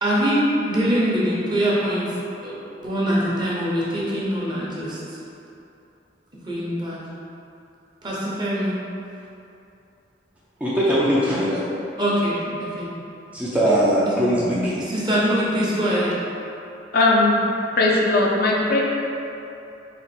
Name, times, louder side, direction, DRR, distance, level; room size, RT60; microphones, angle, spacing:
voice 1, 0.0-2.1 2.4-5.2 6.4-7.0 8.0-8.7 12.0-12.9 14.1-14.2 14.8-16.2, equal, 25° right, -7 dB, 0.9 m, -23 dB
voice 2, 10.6-11.6 13.3-14.8, equal, 5° right, -9 dB, 0.5 m, -20 dB
voice 3, 16.9-17.4 17.8-18.8, left 2 dB, 60° left, -3 dB, 0.5 m, -18 dB
4.3 x 2.5 x 4.2 m, 2.8 s
head